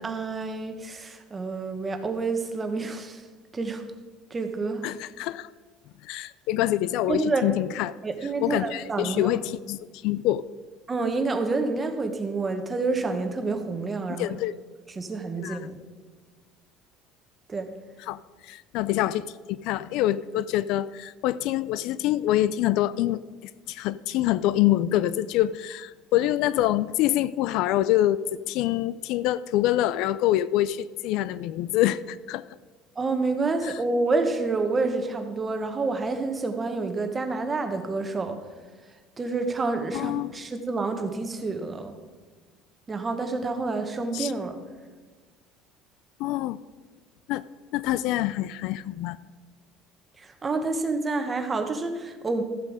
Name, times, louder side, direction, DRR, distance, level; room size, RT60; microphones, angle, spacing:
voice 1, 0.0-3.2 3.5-3.8 4.3-4.8 7.1-7.4 8.0-9.3 10.9-14.4 14.9-15.8 17.5-17.7 33.0-38.4 39.2-42.0 42.9-44.6 50.2-52.4, right 3 dB, 20° right, 6 dB, 1.1 m, -28 dB
voice 2, 4.8-5.5 6.0-7.9 8.4-9.8 10.0-10.4 14.2-14.5 15.4-15.6 18.0-18.2 18.4-23.2 23.7-32.5 33.6-33.7 39.9-40.3 44.1-44.3 46.2-46.6 47.3-47.4 47.7-49.2, left 14 dB, 70° left, 17 dB, 0.3 m, -25 dB
13.5 x 7.6 x 4.9 m, 1.3 s
cardioid pair, 145°, 0 cm